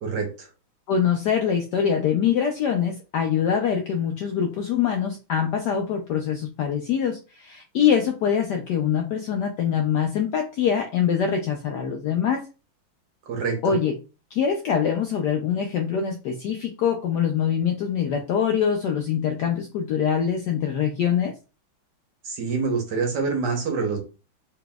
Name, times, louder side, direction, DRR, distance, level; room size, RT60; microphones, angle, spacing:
voice 1, 0.0-0.5 13.3-13.7 22.2-24.0, right 4 dB, 60° right, 3 dB, 1.4 m, -26 dB
voice 2, 0.9-12.5 13.6-13.9 14.3-21.3, left 8 dB, 75° left, 3 dB, 0.9 m, -24 dB
3.9 x 3.6 x 2.3 m, 0.31 s
omnidirectional pair, 2.3 m